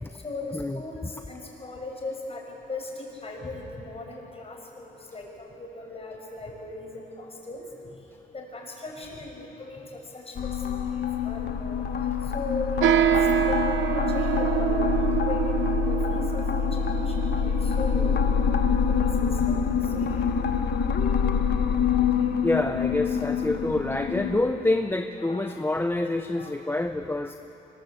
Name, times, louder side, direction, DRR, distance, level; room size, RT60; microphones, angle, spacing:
voice 1, 0.2-7.6 8.3-12.0 12.3-18.1 18.7-20.1 21.9-22.2 23.2-23.4 24.2-24.3 25.2-25.6 26.4-26.8, left 2 dB, 30° left, 0 dB, 6.2 m, -38 dB
sound 1, 10.4-24.4, left 7 dB, 55° left, 1.5 m, -26 dB
sound 2, 12.8-20.6, right 11 dB, 80° right, 0.8 m, -27 dB
voice 2, 22.4-27.3, left 2 dB, 10° left, 7 dB, 0.8 m, -27 dB
24.0 x 21.0 x 8.2 m, 2.9 s
cardioid pair, 90°, 20 cm